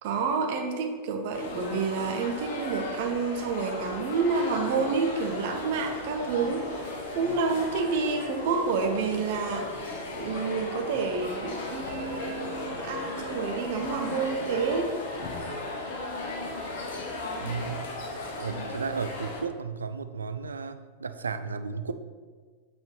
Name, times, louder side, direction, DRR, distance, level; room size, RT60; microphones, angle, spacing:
voice 1, 0.0-15.0, right 4 dB, 50° right, 4 dB, 0.8 m, -29 dB
sound 1, 1.3-19.4, left 2 dB, 55° left, 1.0 m, -36 dB
voice 2, 17.4-17.8 18.4-21.9, right 5 dB, 75° right, 10 dB, 0.3 m, -34 dB
8.0 x 4.3 x 3.1 m, 1.5 s
figure-of-eight pair, 90°, 0 cm